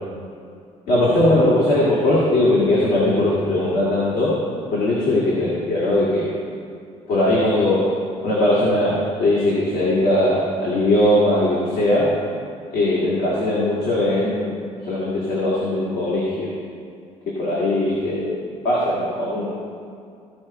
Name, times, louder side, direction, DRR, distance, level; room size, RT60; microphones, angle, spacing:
voice 1, 0.9-4.4 4.7-6.2 7.1-7.9 8.2-12.1 12.7-14.6 14.8-16.5 17.4-18.3 18.6-19.5, left 1 dB, 70° left, -7 dB, 2.2 m, -19 dB
15.5 x 5.5 x 4.3 m, 2.4 s
cardioid pair, 160°, 13 cm